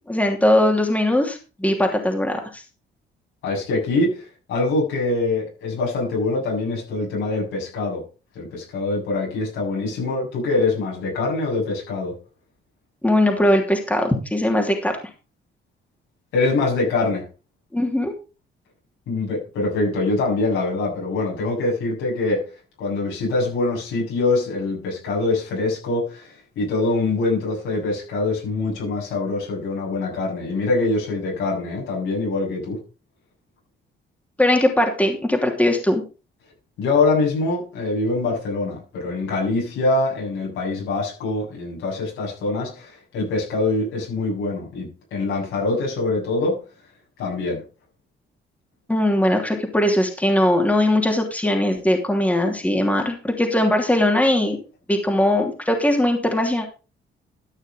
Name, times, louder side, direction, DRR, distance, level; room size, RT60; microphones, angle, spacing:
voice 1, 0.1-2.6 13.0-15.0 17.7-18.1 34.4-36.0 48.9-54.6 54.9-56.7, left 1 dB, 5° left, 2 dB, 2.9 m, -20 dB
voice 2, 3.4-8.0 8.3-12.1 16.3-17.2 19.1-22.4 22.8-32.8 36.8-46.6 47.2-47.6, left 3 dB, 85° left, -3 dB, 7.6 m, -24 dB
13.0 x 6.4 x 5.2 m, 0.34 s
cardioid pair, 90°, 20 cm